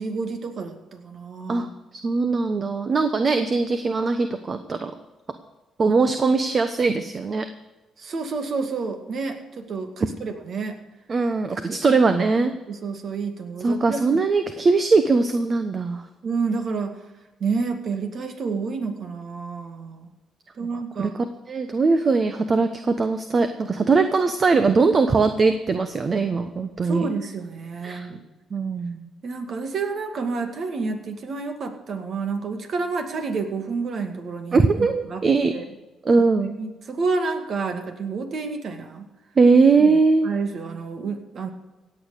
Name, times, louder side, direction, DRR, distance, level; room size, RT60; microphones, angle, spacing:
voice 1, 0.0-1.7 8.0-10.8 12.7-14.2 16.2-17.0 17.4-20.1 20.6-21.2 26.8-28.2 29.2-35.2 35.5-35.7 36.6-39.1 39.8-39.9 40.2-41.5, right 4 dB, 55° right, 6 dB, 2.2 m, -29 dB
voice 2, 2.0-4.9 5.8-7.4 11.1-12.5 13.6-16.0 21.0-27.1 27.8-28.1 28.5-29.1 34.5-35.5 36.0-36.6 39.4-40.3, right 4 dB, 40° right, 8 dB, 1.1 m, -20 dB
16.5 x 8.6 x 6.7 m, 1.1 s
cardioid pair, 90°, 0 cm